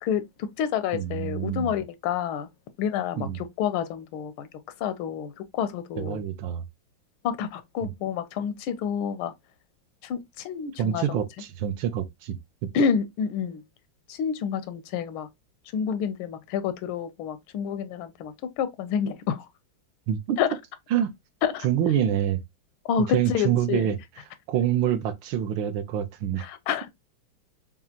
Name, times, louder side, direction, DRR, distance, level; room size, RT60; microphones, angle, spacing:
voice 1, 0.0-2.5 2.8-4.5 4.8-6.2 7.2-9.3 10.0-11.2 12.7-13.6 14.1-15.3 15.7-19.5 20.4-20.5 21.4-21.7 22.8-23.9 26.4-26.9, left 7 dB, 90° left, 1.5 m, -28 dB
voice 2, 0.9-1.8 3.2-3.4 6.0-6.6 7.8-7.9 10.8-12.4 20.1-20.4 20.9-21.1 21.6-22.4 23.1-24.0 24.5-26.5, right 10 dB, 75° right, 1.3 m, -26 dB
5.4 x 2.4 x 2.8 m
omnidirectional pair, 2.2 m